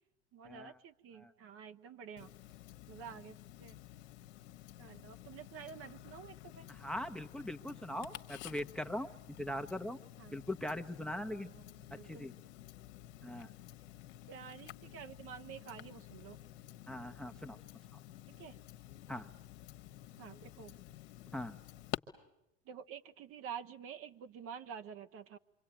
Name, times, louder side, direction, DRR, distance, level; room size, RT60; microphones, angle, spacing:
voice 1, 0.3-2.3 2.9-3.8 4.8-6.8 10.2-10.4 11.2-12.3 14.3-16.4 18.3-18.6 20.2-20.8 22.6-25.4, right 7 dB, 35° right, 10 dB, 1.1 m, -49 dB
Tick-tock, 2.2-22.0, left 14 dB, 60° left, 1.3 m, -51 dB
voice 2, 6.7-9.1 9.4-10.0 10.3-11.5 11.9-12.3 13.2-13.5 16.9-17.6 19.1-19.3 21.3-21.6, left 1 dB, ahead, 9 dB, 1.0 m, -41 dB
27.0 x 24.5 x 9.0 m, 0.85 s
hypercardioid pair, 95°, 36 cm